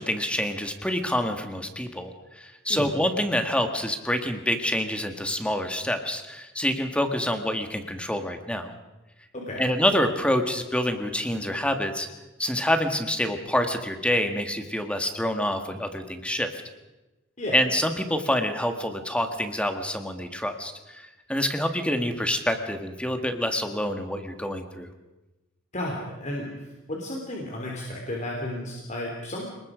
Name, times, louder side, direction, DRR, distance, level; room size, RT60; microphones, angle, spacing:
voice 1, 0.0-2.1 2.4-8.7 9.6-12.1 12.4-16.5 17.5-21.0 21.3-24.9, left 1 dB, 5° left, 6 dB, 1.8 m, -27 dB
voice 2, 9.3-9.7 17.4-17.6 25.7-29.5, left 1 dB, 40° left, -1 dB, 3.3 m, -33 dB
29.0 x 20.0 x 5.1 m, 1.1 s
head